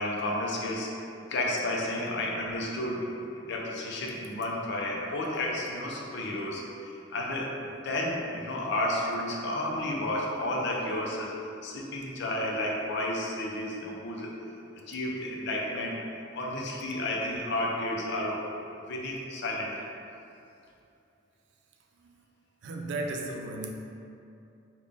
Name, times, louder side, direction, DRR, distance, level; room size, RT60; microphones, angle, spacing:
voice 1, 0.0-11.4 11.6-14.4 14.9-16.0 16.3-18.5 18.9-19.8, left 1 dB, 65° left, -2 dB, 0.5 m, -32 dB
voice 2, 22.6-23.7, right 2 dB, 65° right, 2 dB, 0.4 m, -34 dB
3.8 x 2.3 x 3.4 m, 2.6 s
head